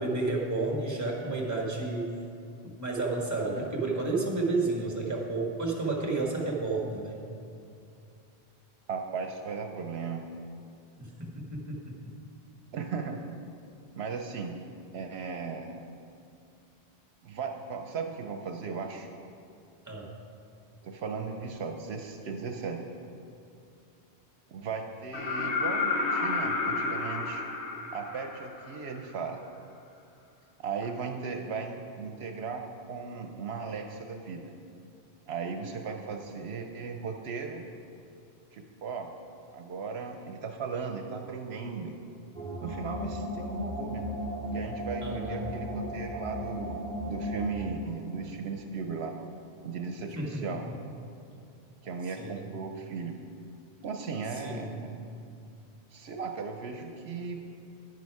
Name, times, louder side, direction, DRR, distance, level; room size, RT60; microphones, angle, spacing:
voice 1, 0.0-2.1 2.6-7.2 11.0-12.1 19.9-20.1 45.0-45.5 50.2-50.6 52.1-52.5 54.3-54.9, right 3 dB, 15° right, -1 dB, 1.4 m, -31 dB
voice 2, 8.9-10.2 12.7-13.2 14.0-14.6 14.9-15.8 17.2-19.1 20.8-22.8 24.5-27.4 27.9-29.4 30.6-32.6 32.9-34.5 35.3-37.7 38.5-39.1 39.5-41.9 42.6-44.1 44.5-49.1 49.6-50.6 51.8-53.1 53.8-55.1 55.9-57.4, right 5 dB, 75° right, 4 dB, 0.9 m, -36 dB
sound 1, 25.1-28.9 30.8-30.9, left 3 dB, 90° left, 1.4 m, -31 dB
sound 2, 42.3-47.6, equal, 10° left, 1.8 m, -35 dB
9.8 x 9.5 x 4.7 m, 2.5 s
omnidirectional pair, 1.1 m